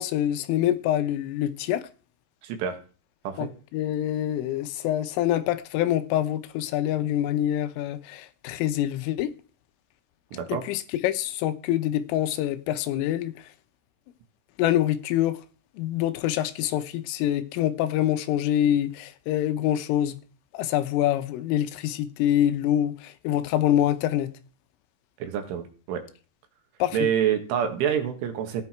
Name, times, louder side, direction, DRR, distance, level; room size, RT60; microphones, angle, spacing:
voice 1, 0.0-1.9 3.4-9.3 10.5-13.3 14.6-15.4 15.8-20.2 20.5-24.3 26.8-27.0, left 12 dB, 80° left, 3.5 m, -25 dB
voice 2, 2.4-2.8 3.2-3.5 10.3-10.7 25.2-26.1 26.9-28.6, right 9 dB, 75° right, 4.2 m, -27 dB
15.5 x 10.5 x 4.5 m
omnidirectional pair, 5.8 m